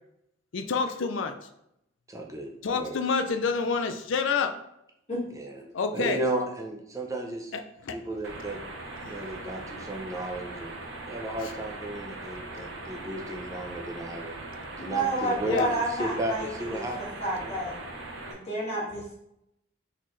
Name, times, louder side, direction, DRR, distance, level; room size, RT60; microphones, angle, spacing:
voice 1, 0.5-1.3 2.6-4.5 5.7-6.2 7.5-8.0 9.0-9.8 11.4-11.5 15.4-15.7, left 5 dB, 70° left, 7 dB, 0.5 m, -29 dB
voice 2, 2.1-3.0 5.3-5.6 5.9-7.5 7.9-8.6 9.0-10.7 11.1-14.4 14.8-17.0 17.3-17.5, right 1 dB, 15° right, 2 dB, 0.5 m, -34 dB
sound 1, 8.2-18.3, right 2 dB, 60° right, 0.8 m, -40 dB
voice 3, 14.8-16.9 17.2-17.7 18.3-19.1, right 1 dB, 35° left, -6 dB, 1.8 m, -30 dB
4.1 x 4.1 x 3.1 m, 0.79 s
head